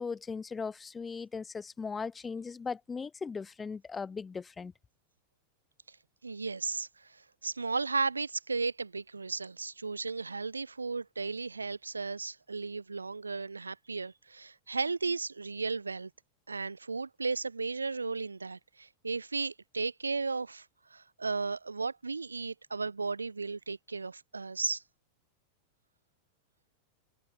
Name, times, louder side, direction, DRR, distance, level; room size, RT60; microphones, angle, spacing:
voice 1, 0.0-4.7, left 5 dB, 15° left, 0.4 m, -38 dB
voice 2, 6.2-16.1 16.5-20.7 20.9-24.8, right 4 dB, 80° right, 0.3 m, -35 dB
figure-of-eight pair, 90°, 0 cm